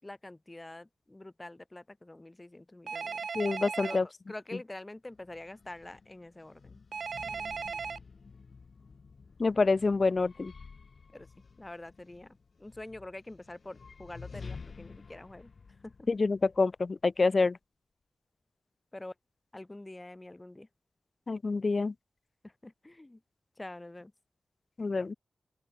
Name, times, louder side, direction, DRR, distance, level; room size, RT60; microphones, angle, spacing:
voice 1, 0.0-3.3 3.8-6.8 11.1-11.3 11.6-15.5 15.8-16.1 17.2-17.5 18.9-19.1 19.5-20.7 22.4-23.2 23.6-24.1, left 2 dB, 20° left, 5.9 m, -46 dB
Telephone, 2.9-4.0 6.9-8.0, right 5 dB, 70° right, 4.0 m, -36 dB
voice 2, 3.3-4.0 9.4-10.5 16.1-17.6 21.3-21.9 24.8-25.2, left 3 dB, 45° left, 1.5 m, -27 dB
sound 1, 5.1-17.2, left 5 dB, 60° left, 5.0 m, -51 dB
open air
wide cardioid pair, 100°, 0 cm